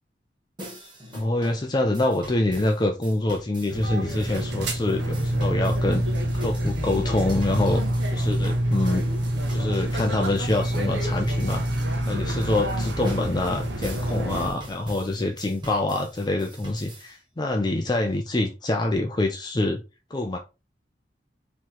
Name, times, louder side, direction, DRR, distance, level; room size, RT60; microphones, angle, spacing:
sound 1, 0.6-17.1, equal, 25° right, 1.2 m, -42 dB
voice 1, 1.1-6.0 6.3-7.8 8.1-9.1 9.5-11.6 12.1-19.8 20.1-20.4, left 2 dB, 25° left, 0.5 m, -25 dB
sound 2, 3.7-14.5, right 1 dB, 70° right, 1.0 m, -26 dB
4.5 x 3.1 x 3.7 m
head